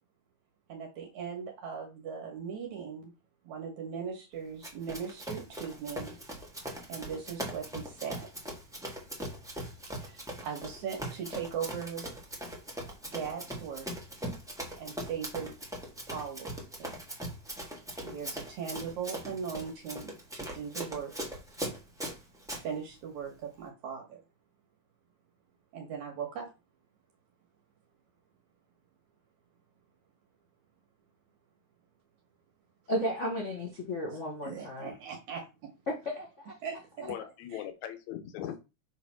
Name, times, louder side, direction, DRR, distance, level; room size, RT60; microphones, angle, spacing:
voice 1, 0.7-3.1 3.4-6.2 6.9-8.3 10.0-12.1 13.1-13.9 14.8-15.5 16.1-16.9 18.0-21.1 22.6-24.2 25.7-26.5 34.1-35.7 36.6-37.1 37.5-37.6, right 7 dB, 70° right, 2 dB, 2.6 m, -39 dB
Run, 4.6-22.6, right 1 dB, ahead, 0.8 m, -40 dB
voice 2, 32.9-34.9 36.0-36.5, equal, 90° left, -2 dB, 0.6 m, -34 dB
voice 3, 37.0-38.6, left 11 dB, 70° left, 8 dB, 2.2 m, -39 dB
6.8 x 3.3 x 5.9 m, 0.27 s
omnidirectional pair, 3.6 m